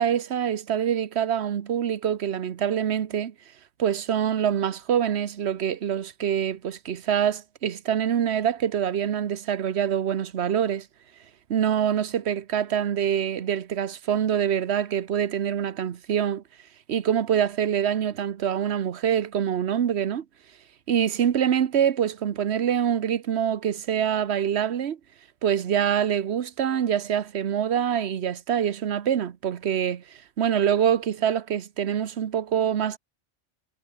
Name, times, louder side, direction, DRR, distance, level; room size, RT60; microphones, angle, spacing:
voice 1, 0.0-3.3 3.8-10.9 11.5-16.4 16.9-20.2 20.9-25.0 25.4-33.0, right 9 dB, 65° right, 1.2 m, -25 dB
omnidirectional pair, 1.2 m